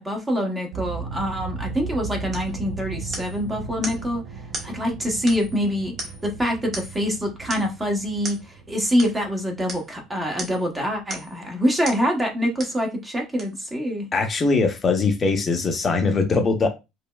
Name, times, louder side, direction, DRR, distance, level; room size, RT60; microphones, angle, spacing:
voice 1, 0.0-4.2 4.6-5.9 6.2-14.1, equal, 15° right, 1.0 m, -25 dB
sound 1, 0.7-11.7, right 4 dB, 65° right, 0.6 m, -37 dB
sound 2, 2.3-2.5 3.1-3.4 3.8-4.0 4.5-4.7 5.3-5.6 6.0-6.3 6.7-7.0 7.5-7.7 8.2-8.4 9.0-9.2 9.7-9.9 10.4-10.7 11.1-11.4 11.8-12.1 12.6-12.8 13.4-13.5, right 2 dB, 40° right, 1.2 m, -35 dB
voice 2, 14.1-16.7, left 4 dB, 30° left, 0.8 m, -21 dB
5.1 x 2.1 x 2.3 m
cardioid pair, 115°, 0 cm